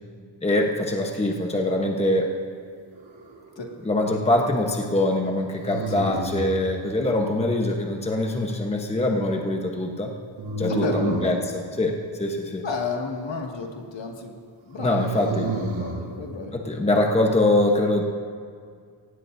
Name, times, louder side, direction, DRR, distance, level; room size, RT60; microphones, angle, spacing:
voice 1, 0.4-2.4 3.8-10.1 10.6-12.6 14.8-15.6 16.5-18.1, left 1 dB, 15° left, 1 dB, 1.1 m, -23 dB
sound 1, 2.9-3.6 5.6-6.6 10.4-11.4 14.8-16.0, right 3 dB, 75° right, 3.0 m, -30 dB
voice 2, 10.7-11.0 12.6-14.3 14.7-16.5, left 4 dB, 65° left, 0 dB, 2.2 m, -32 dB
24.0 x 17.5 x 2.7 m, 2.1 s
wide cardioid pair, 160°, 47 cm